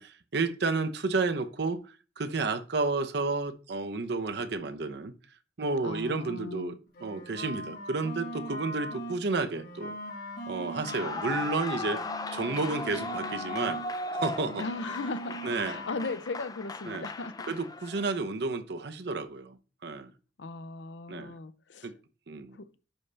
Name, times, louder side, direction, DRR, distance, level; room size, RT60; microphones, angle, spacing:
voice 1, 0.0-5.1 5.6-9.9 10.5-12.0 12.3-13.8 14.1-14.7 15.4-15.8 16.9-17.1 17.5-20.1 21.1-21.4 21.8-21.9 22.3-22.6, right 3 dB, 65° right, 0.7 m, -31 dB
voice 2, 5.8-6.8 14.6-17.3 20.4-21.9 22.5-22.7, left 3 dB, 75° left, 0.6 m, -37 dB
sound 1, 6.9-9.2 9.5-13.9 14.2-16.2, equal, 55° left, 2.3 m, -41 dB
Clapping / Cheering / Applause, 10.7-18.2, left 2 dB, 20° left, 0.4 m, -37 dB
10.0 x 5.5 x 3.3 m
head